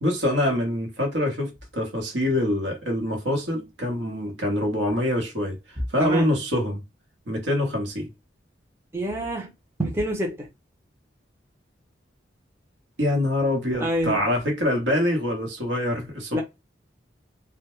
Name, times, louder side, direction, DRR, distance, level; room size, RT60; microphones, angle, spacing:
voice 1, 0.0-5.6 5.9-6.8 7.3-8.1 13.0-16.4, left 1 dB, 85° right, 1.0 m, -25 dB
voice 2, 6.0-6.3 8.9-9.5 9.8-10.5 13.8-14.2 16.3-16.4, right 1 dB, 15° right, 0.5 m, -26 dB
2.2 x 2.1 x 3.0 m
head